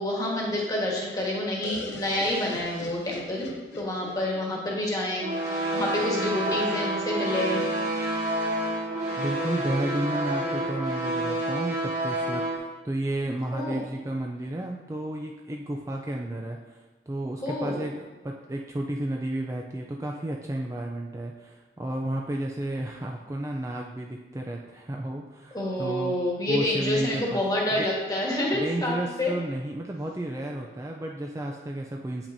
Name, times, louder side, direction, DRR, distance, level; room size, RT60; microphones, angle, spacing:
voice 1, 0.0-3.5 3.7-7.6 13.5-13.8 17.4-17.8 25.5-29.3, left 1 dB, 20° left, -3 dB, 1.4 m, -28 dB
sound 1, 1.6-5.4, left 3 dB, 80° left, 0.7 m, -42 dB
sound 2, 5.2-12.6, right 1 dB, 45° right, 2.3 m, -29 dB
voice 2, 9.2-26.2 26.5-27.4 27.7-27.9 28.5-32.3, right 1 dB, 15° right, 1 dB, 0.4 m, -32 dB
8.5 x 5.8 x 2.7 m, 1.2 s
head